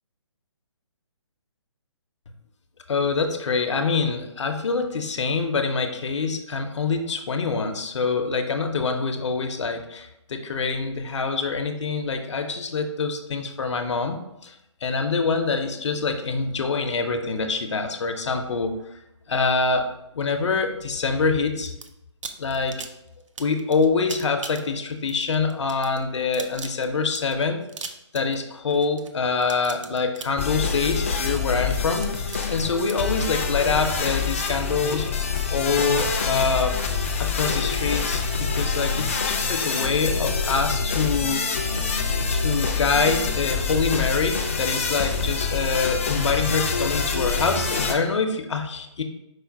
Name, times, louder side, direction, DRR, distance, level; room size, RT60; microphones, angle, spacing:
voice 1, 2.9-14.6 14.8-18.8 19.3-19.9 20.1-21.7 22.4-22.8 23.4-35.2 35.5-36.8 37.2-41.8 42.3-49.0, left 4 dB, 70° left, 6 dB, 0.6 m, -25 dB
sound 1, 21.6-21.9 22.2-34.5, right 5 dB, 85° right, 0.5 m, -40 dB
sound 2, 30.4-47.9, left 5 dB, 25° left, 0.3 m, -26 dB
4.9 x 2.1 x 4.5 m, 0.87 s
hypercardioid pair, 165°, 16 cm